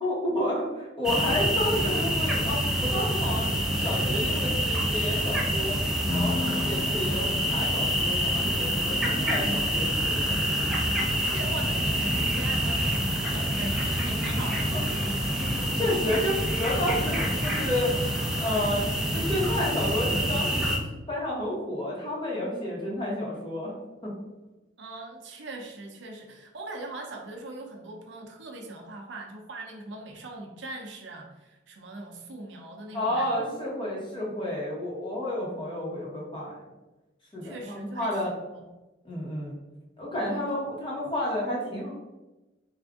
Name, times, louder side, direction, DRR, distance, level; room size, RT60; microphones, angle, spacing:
voice 1, 0.0-5.8 6.1-10.4 14.7-15.1 15.4-18.0 18.4-20.8 21.1-23.7 24.0-24.1 32.9-36.6 37.3-38.3 39.0-39.6 40.0-41.9, left 1 dB, 25° left, -5 dB, 1.1 m, -31 dB
sound 1, 1.0-20.8, equal, ahead, 0.4 m, -27 dB
Piano, 6.1-13.5, left 3 dB, 45° left, 0.8 m, -39 dB
voice 2, 11.2-14.7 24.8-33.3 37.4-38.1 38.5-38.6 40.3-40.4, right 2 dB, 70° right, 1 dB, 0.6 m, -41 dB
3.5 x 2.6 x 3.5 m, 1.1 s
head